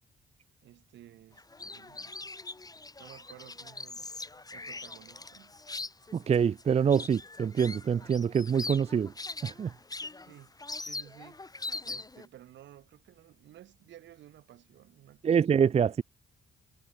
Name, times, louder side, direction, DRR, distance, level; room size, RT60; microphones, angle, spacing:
voice 1, 0.6-2.3 3.0-4.1 4.5-5.6 10.1-10.5 10.8-15.5, right 12 dB, 85° right, 3.2 m, -54 dB
sound 1, 1.4-12.3, left 3 dB, 20° left, 2.3 m, -42 dB
voice 2, 6.1-9.1 9.4-9.7 15.2-16.0, right 7 dB, 35° right, 0.4 m, -25 dB
cardioid pair, 90°, 18 cm